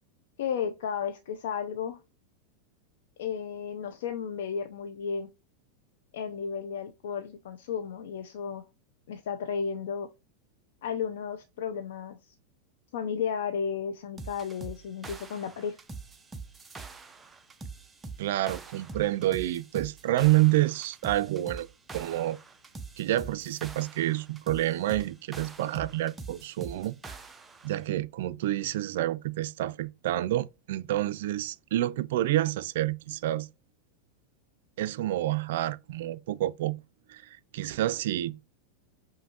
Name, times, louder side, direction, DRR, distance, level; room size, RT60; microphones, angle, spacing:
voice 1, 0.4-2.0 3.2-5.3 6.1-8.6 9.1-10.1 10.8-12.3 12.9-15.8, left 7 dB, 80° left, 0.6 m, -33 dB
sound 1, 14.2-27.7, right 4 dB, 10° right, 0.5 m, -44 dB
voice 2, 18.2-21.7 21.9-22.4 23.0-26.9 27.6-33.5 34.8-36.8 37.1-37.2 37.5-38.5, right 15 dB, 70° right, 0.4 m, -28 dB
5.5 x 2.6 x 2.9 m
supercardioid pair, 135°, 0 cm